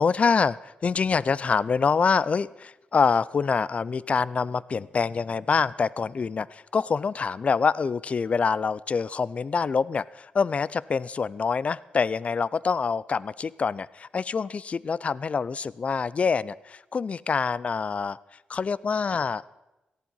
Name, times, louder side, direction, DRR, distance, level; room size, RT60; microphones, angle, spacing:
voice 1, 0.0-18.2 18.5-19.4, left 5 dB, 45° left, 20 dB, 0.4 m, -26 dB
17.5 x 14.5 x 5.6 m, 0.99 s
cardioid pair, 85°, 3 cm